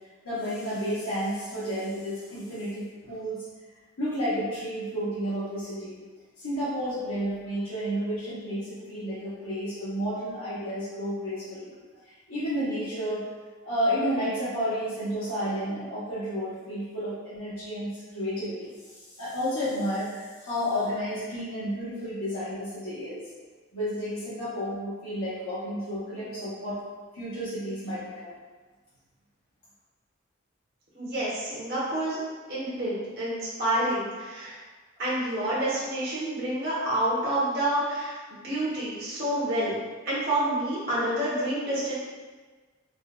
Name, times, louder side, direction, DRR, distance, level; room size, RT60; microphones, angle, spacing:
voice 1, 0.2-3.4 4.0-6.0 6.4-11.7 12.0-13.3 13.6-18.7 19.2-23.2 23.7-26.8 27.1-28.3, equal, 85° left, -12 dB, 0.9 m, -31 dB
voice 2, 30.9-32.2 32.5-34.6 35.0-39.8 40.0-41.9, right 1 dB, 50° right, -9 dB, 1.0 m, -28 dB
3.9 x 2.2 x 2.3 m, 1.4 s
head